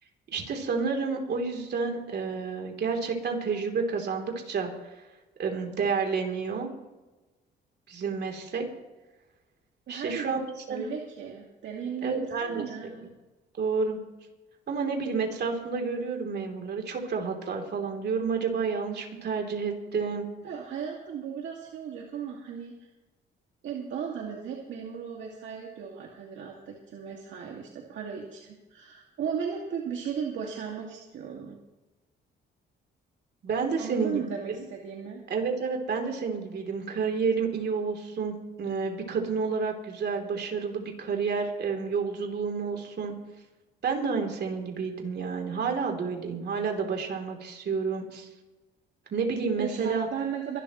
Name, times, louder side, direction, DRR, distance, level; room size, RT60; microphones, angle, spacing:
voice 1, 0.3-4.7 5.4-6.7 7.9-8.6 9.9-10.9 12.0-12.6 13.6-14.0 14.7-20.2 33.4-34.2 34.5-34.6 35.3-43.1 43.8-48.3 49.1-50.1, right 5 dB, 55° right, 2 dB, 3.3 m, -30 dB
voice 2, 9.9-10.2 10.7-13.1 20.4-22.7 23.6-31.6 33.8-35.2 49.6-50.6, right 7 dB, 75° right, -1 dB, 2.2 m, -36 dB
24.0 x 12.0 x 3.1 m, 1.1 s
cardioid pair, 90°, 20 cm